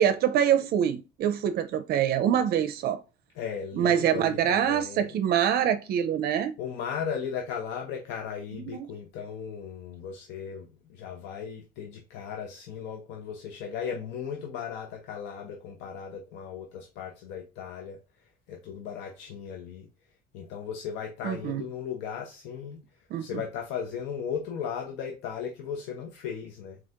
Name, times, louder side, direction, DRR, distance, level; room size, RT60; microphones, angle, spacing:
voice 1, 0.0-3.0 3.7-6.5 8.7-8.9 21.2-21.6 23.1-23.3, right 9 dB, 60° right, 0.5 m, -25 dB
voice 2, 3.3-5.2 6.6-19.9 20.3-22.8 23.2-26.8, left 7 dB, 90° left, 0.7 m, -36 dB
4.4 x 3.9 x 2.4 m
cardioid pair, 135°, 18 cm